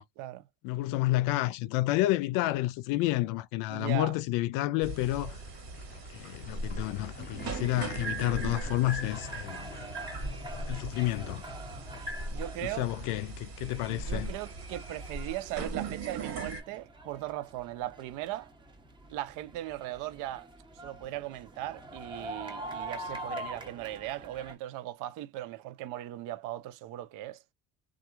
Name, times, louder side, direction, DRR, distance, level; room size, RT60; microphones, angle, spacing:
voice 1, 0.6-5.4 6.1-9.7 10.7-11.4 12.8-14.3, left 17 dB, 80° left, 0.5 m, -30 dB
voice 2, 3.7-4.2 12.3-12.9 13.9-18.5 19.1-20.5 20.8-27.4, right 14 dB, 75° right, 0.6 m, -38 dB
sound 1, 4.8-16.6, right 3 dB, 55° right, 1.6 m, -39 dB
sound 2, 4.9-12.9, left 7 dB, 30° left, 0.4 m, -48 dB
sound 3, 9.1-24.6, right 1 dB, 15° right, 1.0 m, -45 dB
2.9 x 2.4 x 2.2 m
cardioid pair, 105°, 31 cm